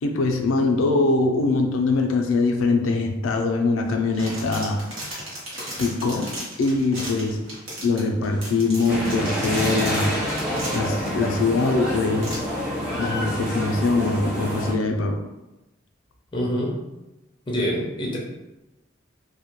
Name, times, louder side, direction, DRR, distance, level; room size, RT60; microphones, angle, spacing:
voice 1, 0.0-4.8 5.8-6.3 6.6-7.5 7.8-10.1 10.7-12.4 12.9-15.2, left 3 dB, 85° left, 3 dB, 0.4 m, -22 dB
sound 1, 3.9-11.1 11.7-11.8 12.2-12.4, right 1 dB, 80° right, 1.0 m, -36 dB
sound 2, 8.9-14.7, equal, 5° right, 0.8 m, -27 dB
voice 2, 16.3-16.8 17.5-18.2, equal, 25° left, -3 dB, 0.4 m, -25 dB
2.1 x 2.1 x 2.9 m, 0.99 s
head